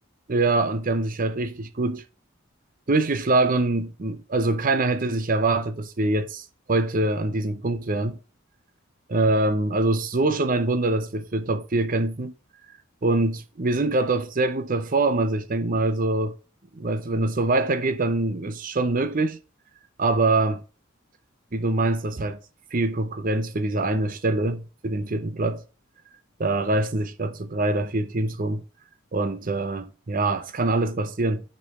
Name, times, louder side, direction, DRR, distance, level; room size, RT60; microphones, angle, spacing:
voice 1, 0.3-2.0 2.9-8.2 9.1-12.3 13.0-16.3 16.7-19.4 20.0-20.6 21.5-22.4 22.7-25.6 26.4-28.6 29.1-31.4, right 2 dB, 45° right, 0.7 m, -24 dB
6.8 x 5.4 x 4.3 m
head